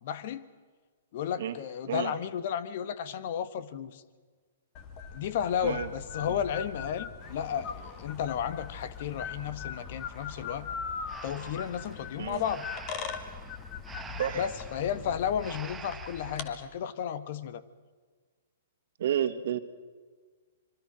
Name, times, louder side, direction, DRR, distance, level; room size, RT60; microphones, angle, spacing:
voice 1, 0.0-0.5 1.1-4.0 5.1-10.7 11.2-12.7 14.4-17.6, left 8 dB, 55° left, 15 dB, 1.4 m, -33 dB
sound 1, 4.7-16.5, left 6 dB, 40° left, 2.4 m, -41 dB
sound 2, 7.2-15.7, left 3 dB, 15° left, 2.2 m, -54 dB
Breathing, 11.1-16.6, right 5 dB, 10° right, 1.4 m, -47 dB
voice 2, 19.0-19.6, right 10 dB, 65° right, 9 dB, 1.8 m, -30 dB
25.5 x 24.0 x 6.2 m, 1.5 s
hypercardioid pair, 125°, 0 cm